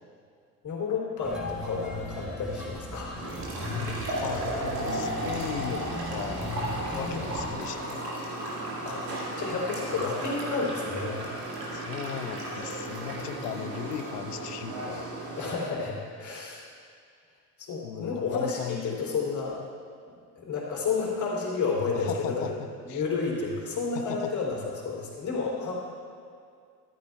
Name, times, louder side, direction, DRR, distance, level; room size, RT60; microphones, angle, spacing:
voice 1, 0.6-3.1 3.6-3.8 5.6-5.8 7.0-7.4 8.8-11.3 13.3-13.8 15.3-16.6 17.6-19.6 20.4-22.5 22.8-25.7, left 4 dB, 35° left, -3 dB, 3.0 m, -31 dB
sound 1, 1.2-7.5, left 1 dB, ahead, 2.6 m, -37 dB
sound 2, 3.2-15.5, right 1 dB, 80° right, 1.9 m, -34 dB
voice 2, 3.7-8.0 11.7-15.1 17.8-19.0 21.9-23.0 23.9-24.3, left 9 dB, 75° left, 9 dB, 0.7 m, -38 dB
13.5 x 13.0 x 2.3 m, 2.2 s
figure-of-eight pair, 55°, 48 cm